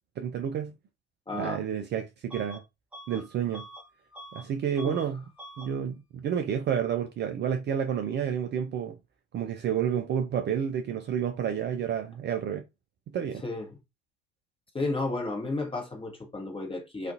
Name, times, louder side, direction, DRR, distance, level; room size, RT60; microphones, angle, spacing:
voice 1, 0.2-0.7 1.3-2.6 3.1-3.6 4.3-5.2 5.6-9.0 9.3-12.6 13.1-13.4, right 8 dB, 35° right, 0.4 m, -30 dB
voice 2, 1.3-1.6 4.8-5.0 13.4-13.8 14.7-17.1, left 2 dB, 15° left, 1.0 m, -32 dB
Bus / Alarm, 2.3-2.6 2.9-4.5 4.7-5.1 5.4-5.7, right 1 dB, 5° right, 0.7 m, -46 dB
2.4 x 2.4 x 2.7 m
figure-of-eight pair, 55°, 32 cm